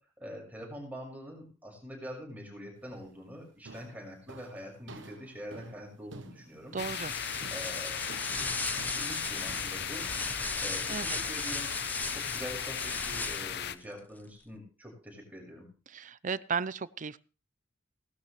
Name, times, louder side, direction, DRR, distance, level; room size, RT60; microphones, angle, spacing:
voice 1, 0.2-6.8 7.5-8.1 8.9-10.1 10.6-11.7 12.1-15.7, equal, 10° right, -1 dB, 6.0 m, -44 dB
sound 1, 2.8-3.2 3.7-11.6, right 2 dB, 70° right, 1.2 m, -51 dB
voice 2, 6.7-7.1 10.9-11.2 15.9-17.2, right 5 dB, 40° right, 18 dB, 0.6 m, -35 dB
sound 2, 6.8-13.7, left 9 dB, 60° left, 0.8 m, -37 dB
sound 3, 6.8-13.7, left 2 dB, 10° left, 0.9 m, -37 dB
18.5 x 12.0 x 3.3 m, 0.35 s
head